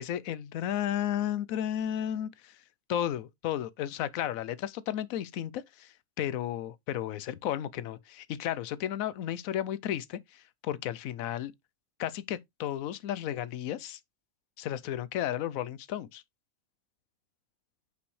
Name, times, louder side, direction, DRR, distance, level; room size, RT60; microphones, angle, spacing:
voice 1, 0.0-2.6 2.9-11.5 12.0-14.0 14.6-16.2, left 11 dB, 85° left, 1.0 m, -33 dB
6.1 x 5.7 x 3.1 m
omnidirectional pair, 1.4 m